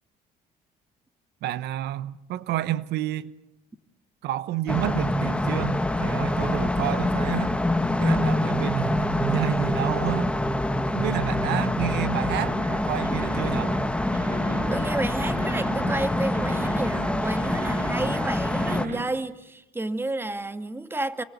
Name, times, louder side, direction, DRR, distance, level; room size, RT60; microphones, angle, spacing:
voice 1, 1.4-3.3 4.2-7.6 8.0-10.3 10.9-13.7, right 13 dB, 80° right, 0.9 m, -29 dB
sound 1, 4.7-18.9, left 1 dB, 5° left, 1.5 m, -25 dB
sound 2, 12.4-19.0, right 4 dB, 55° right, 7.1 m, -37 dB
voice 2, 14.7-21.2, right 2 dB, 15° right, 1.7 m, -31 dB
28.5 x 24.0 x 8.3 m
cardioid pair, 110°, 17 cm